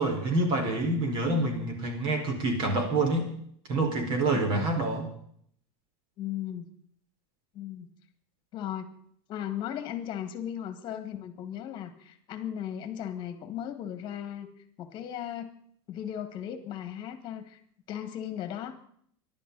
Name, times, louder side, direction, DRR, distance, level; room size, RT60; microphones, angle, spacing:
voice 1, 0.0-3.3 3.7-5.1, right 2 dB, 35° right, 3 dB, 4.9 m, -27 dB
voice 2, 6.2-6.7 7.5-7.9 8.5-8.9 9.3-14.5 14.8-15.5 15.9-17.6 17.9-18.8, left 10 dB, 35° left, 9 dB, 2.0 m, -36 dB
25.0 x 12.0 x 4.2 m, 0.64 s
supercardioid pair, 165°, 14 cm